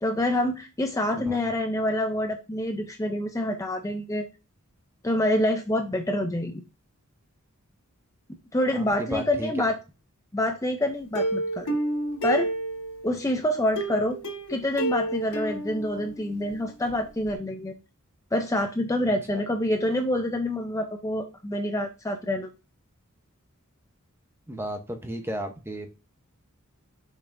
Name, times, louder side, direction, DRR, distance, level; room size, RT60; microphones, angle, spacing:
voice 1, 0.0-4.3 5.0-6.6 8.5-9.8 10.3-11.8 12.2-12.5 13.0-14.2 14.5-17.7 18.3-22.5, left 1 dB, 15° left, 0.5 m, -27 dB
voice 2, 9.1-9.5 24.5-25.9, right 1 dB, 10° right, 0.9 m, -33 dB
Plucked string instrument, 11.1-13.1 13.8-16.5 16.9-17.0 17.3-17.4, right 2 dB, 85° left, 3.2 m, -30 dB
7.0 x 5.6 x 2.6 m
head